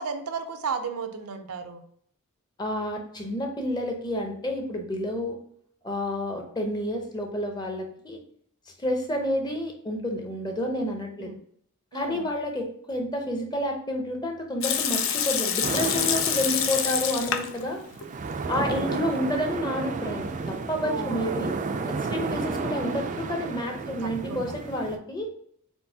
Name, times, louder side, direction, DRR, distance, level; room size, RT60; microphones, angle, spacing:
voice 1, 0.0-1.8 11.2-11.3 11.9-12.2 20.8-21.5 23.8-24.5, right 5 dB, 85° right, 8 dB, 0.6 m, -34 dB
voice 2, 2.6-5.4 5.8-8.2 8.8-11.3 11.9-17.8 18.5-21.5 21.9-25.3, left 1 dB, 20° left, 3 dB, 0.7 m, -30 dB
Water tap faucet / Sink (filling or washing) / Liquid, 14.6-17.6 17.9-18.0 18.7-19.3, left 8 dB, 60° left, 0.5 m, -27 dB
sound 1, 15.6-25.0, right 4 dB, 35° right, 0.3 m, -32 dB
4.5 x 3.8 x 2.8 m, 0.64 s
head